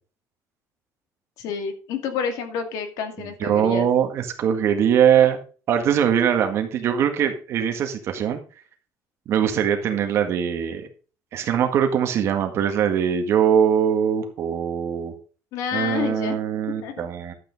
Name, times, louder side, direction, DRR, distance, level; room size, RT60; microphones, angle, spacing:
voice 1, 1.4-3.9 15.5-16.4 16.8-17.1, left 7 dB, 70° left, 6 dB, 2.4 m, -29 dB
voice 2, 3.4-5.4 5.7-8.4 9.3-10.9 11.3-15.1 15.7-17.3, right 8 dB, 45° right, 5 dB, 1.8 m, -21 dB
11.5 x 8.6 x 4.1 m, 0.37 s
cardioid pair, 165°, 6 cm